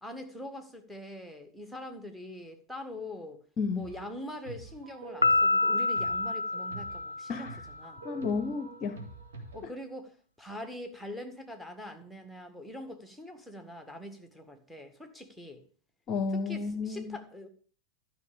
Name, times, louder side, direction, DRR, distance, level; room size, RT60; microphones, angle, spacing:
voice 1, 0.0-3.4 3.7-8.0 9.5-15.6 16.3-17.5, left 1 dB, ahead, 1.9 m, -43 dB
sound 1, 3.8-4.2 4.5-9.7, right 3 dB, 65° right, 2.3 m, -47 dB
Piano, 5.2-7.8, left 3 dB, 85° left, 0.4 m, -28 dB
voice 2, 8.0-9.0 16.1-17.2, left 4 dB, 35° left, 0.9 m, -32 dB
12.5 x 5.7 x 6.8 m
figure-of-eight pair, 90°, 0 cm